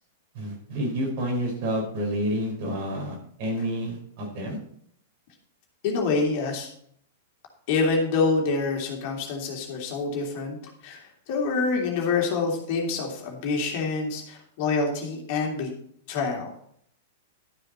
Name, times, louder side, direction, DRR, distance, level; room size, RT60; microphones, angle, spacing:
voice 1, 0.3-4.6, equal, 50° right, 0 dB, 4.7 m, -29 dB
voice 2, 5.8-6.7 7.7-10.6 10.8-15.7 16.1-16.5, left 4 dB, 45° left, 1 dB, 3.0 m, -26 dB
12.0 x 7.7 x 4.4 m, 0.66 s
figure-of-eight pair, 100°, 0 cm